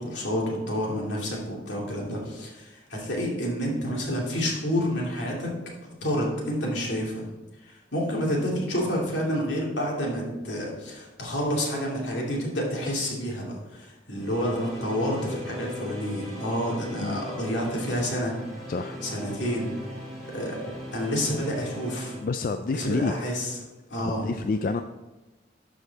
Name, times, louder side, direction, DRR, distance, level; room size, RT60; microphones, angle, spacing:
voice 1, 0.0-5.5 6.0-7.2 7.6-13.4 13.7-18.3 19.0-19.7 20.3-20.6 20.9-22.2 22.7-23.6 23.9-24.3, equal, 80° left, -3 dB, 2.5 m, -29 dB
sound 1, 14.1-22.2, equal, ahead, 3.0 m, -39 dB
voice 2, 22.2-23.1 24.0-24.8, left 4 dB, 50° left, 8 dB, 0.3 m, -28 dB
12.5 x 5.0 x 4.1 m, 1.1 s
head